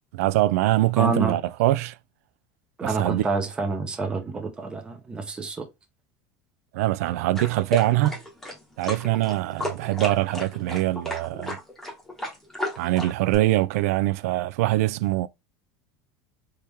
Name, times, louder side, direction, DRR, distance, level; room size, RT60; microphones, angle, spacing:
voice 1, 0.1-1.9 2.8-3.2 6.7-8.2 8.8-11.6 12.8-15.3, right 16 dB, 80° right, 0.4 m, -23 dB
voice 2, 1.0-1.4 2.8-5.7, right 3 dB, 10° right, 0.7 m, -28 dB
sound 1, 7.4-13.4, left 1 dB, 5° left, 1.0 m, -33 dB
3.5 x 2.9 x 3.1 m
cardioid pair, 175°, 8 cm